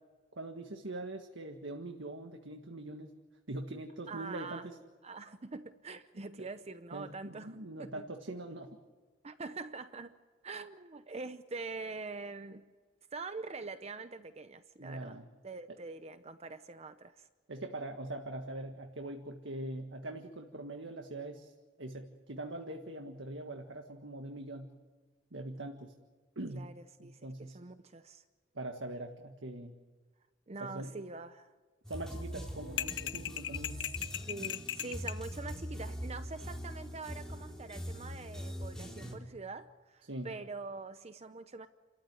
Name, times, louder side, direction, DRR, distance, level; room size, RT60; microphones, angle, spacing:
voice 1, 0.4-3.1 3.5-4.8 6.1-6.2 6.9-8.8 14.8-15.3 17.5-21.5 21.8-24.7 25.3-25.9 26.4-26.7 27.0-27.6 28.5-29.7 30.6-30.9 31.9-33.8 40.1-40.3, right 2 dB, 80° right, 1.7 m, -42 dB
voice 2, 4.1-4.7 5.0-8.0 9.2-10.1 10.4-12.7 13.1-15.2 15.4-17.3 26.5-26.7 27.0-28.2 30.5-31.5 34.3-41.7, right 3 dB, 35° right, 0.7 m, -44 dB
sound 1, 31.8-39.2, equal, 5° left, 3.7 m, -42 dB
sound 2, 32.8-35.2, left 11 dB, 65° left, 0.6 m, -37 dB
30.0 x 14.0 x 9.7 m
head